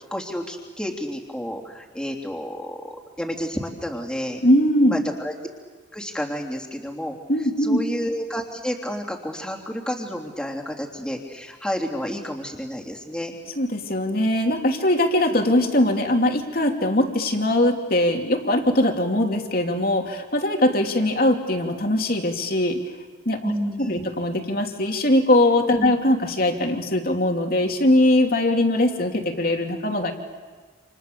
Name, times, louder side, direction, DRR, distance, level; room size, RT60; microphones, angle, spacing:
voice 1, 0.1-4.4 4.8-5.3 5.9-7.2 7.6-13.3 23.4-24.1 25.8-25.9, equal, 5° left, 0 dB, 3.3 m, -30 dB
voice 2, 4.4-5.0 7.3-7.8 13.6-22.8 23.2-23.5 23.9-30.1, left 1 dB, 50° left, 3 dB, 3.0 m, -21 dB
29.5 x 28.5 x 7.0 m, 1.5 s
head